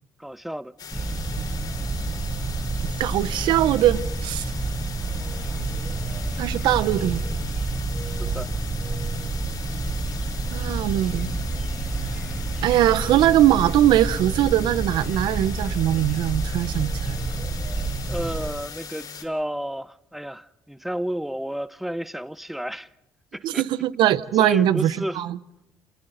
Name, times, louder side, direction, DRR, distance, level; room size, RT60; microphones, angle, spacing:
voice 1, 0.2-0.7 8.2-8.5 18.1-22.9 23.3-23.6 24.4-25.2, equal, ahead, 0.8 m, -31 dB
sound 1, 0.8-19.2, left 6 dB, 60° left, 4.9 m, -40 dB
sound 2, 0.9-18.5, right 3 dB, 20° right, 3.8 m, -29 dB
voice 2, 3.0-4.5 6.4-7.2 10.5-11.3 12.6-17.2 23.4-25.4, right 13 dB, 80° right, 0.8 m, -21 dB
29.0 x 28.5 x 4.0 m
cardioid pair, 85°, 8 cm